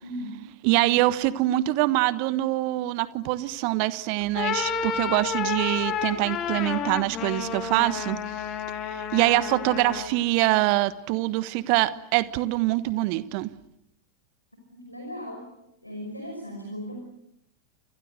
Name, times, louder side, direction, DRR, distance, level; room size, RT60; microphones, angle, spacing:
voice 1, 0.0-0.4 14.8-15.5 15.8-17.0, equal, 85° left, 4 dB, 5.5 m, -37 dB
voice 2, 0.6-8.4 8.9-13.5, right 18 dB, 45° right, 15 dB, 1.3 m, -24 dB
sound 1, 4.2-10.2, left 7 dB, 30° left, 3.2 m, -30 dB
29.5 x 27.5 x 6.6 m, 0.78 s
figure-of-eight pair, 90°, 0 cm